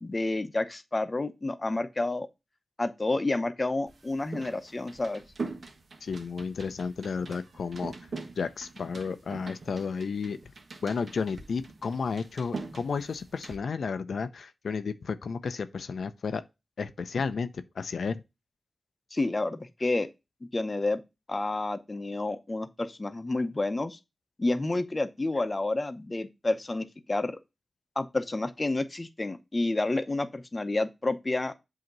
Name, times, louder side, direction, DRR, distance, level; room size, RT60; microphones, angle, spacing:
voice 1, 0.0-2.3 2.8-5.2 19.1-20.1 20.4-21.0 21.3-24.0 24.4-27.4 28.0-31.5, left 2 dB, 35° left, 0.8 m, -29 dB
sound 1, 3.9-13.6, right 4 dB, 65° right, 1.1 m, -43 dB
voice 2, 6.0-7.9 8.4-10.4 10.8-16.4 16.8-18.2, left 5 dB, 80° left, 0.5 m, -32 dB
7.8 x 2.9 x 5.3 m
cardioid pair, 60°, 0 cm